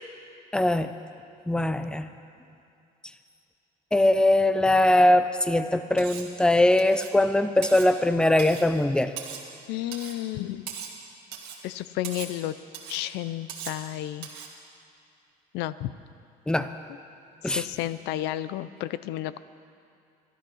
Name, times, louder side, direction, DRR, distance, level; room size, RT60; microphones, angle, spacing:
voice 1, 0.5-0.9 1.5-2.1 3.9-9.1 16.5-16.7 17.4-17.6, left 1 dB, 5° left, 10 dB, 0.6 m, -21 dB
Cutlery silverware, 6.0-6.3 6.8-7.2 7.6-7.9 8.4-8.7 9.2-9.5 9.9-10.2 10.7-11.0 11.3-11.6 12.0-12.4 12.7-13.0 13.5-13.8 14.2-14.5, right 8 dB, 80° right, 1.9 m, -39 dB
voice 2, 9.7-10.7 11.6-12.6 12.9-14.3 15.5-15.9 17.4-19.4, left 14 dB, 90° left, 15 dB, 0.5 m, -32 dB
13.0 x 11.5 x 6.2 m, 2.5 s
cardioid pair, 110°, 17 cm